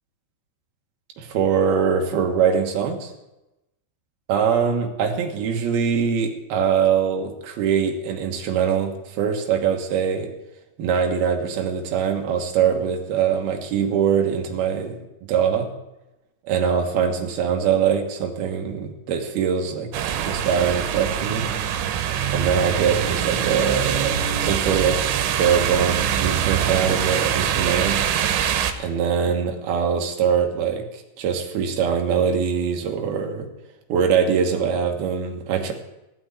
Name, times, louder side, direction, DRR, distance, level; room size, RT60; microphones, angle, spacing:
voice 1, 1.2-3.1 4.3-10.3 10.8-15.0 15.3-15.7 16.5-19.9 20.2-21.5 22.3-25.0 25.4-28.0 28.8-33.5 33.9-35.7, right 7 dB, 65° right, 3 dB, 2.8 m, -22 dB
sound 1, 19.9-28.7, right 9 dB, 80° right, 3.5 m, -23 dB
16.0 x 6.2 x 9.8 m, 0.95 s
omnidirectional pair, 5.6 m